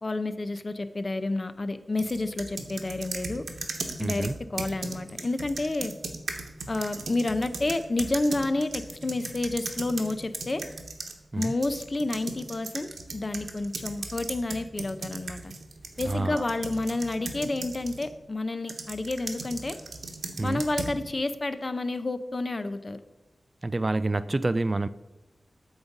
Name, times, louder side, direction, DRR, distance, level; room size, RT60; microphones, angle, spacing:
voice 1, 0.0-3.4 4.0-5.9 6.7-10.6 11.4-15.5 16.0-19.8 20.4-23.0, left 2 dB, 40° left, 10 dB, 0.6 m, -30 dB
sound 1, 2.0-11.1 11.4-18.1 18.7-21.0, right 3 dB, 85° right, 1.0 m, -37 dB
voice 2, 4.0-4.4 11.3-11.5 16.0-16.4 20.4-20.6 23.6-24.9, right 2 dB, 30° right, 14 dB, 0.3 m, -27 dB
8.8 x 4.0 x 7.1 m, 1.0 s
wide cardioid pair, 90°, 0 cm